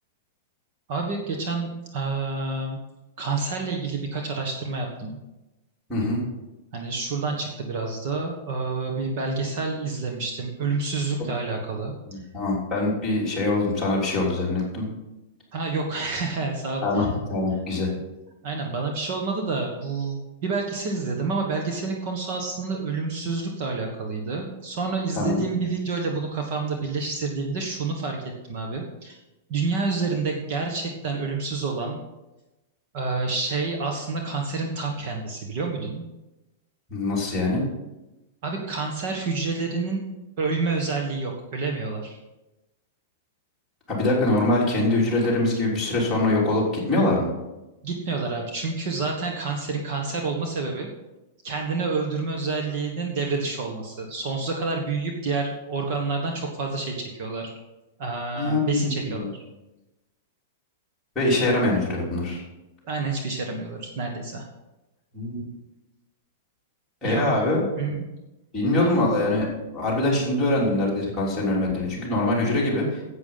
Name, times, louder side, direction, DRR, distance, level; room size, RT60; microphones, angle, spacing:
voice 1, 0.9-2.8 3.2-5.2 6.7-12.2 15.5-17.1 18.4-28.2 28.5-29.2 29.5-32.0 32.9-36.0 38.4-40.0 40.4-42.2 47.8-50.9 51.4-57.5 58.0-59.4 62.8-64.4 67.0-67.3 67.8-68.0 68.8-68.9, right 4 dB, 40° right, 2 dB, 1.4 m, -28 dB
voice 2, 5.9-6.2 11.2-11.3 12.1-14.9 16.8-17.9 25.2-25.4 36.9-37.6 43.9-47.3 58.4-59.3 61.1-62.4 65.1-65.4 67.0-67.6 68.5-69.5 69.7-73.0, left 2 dB, 5° left, -7 dB, 3.4 m, -23 dB
10.5 x 8.3 x 5.7 m, 1.0 s
supercardioid pair, 170°, 0 cm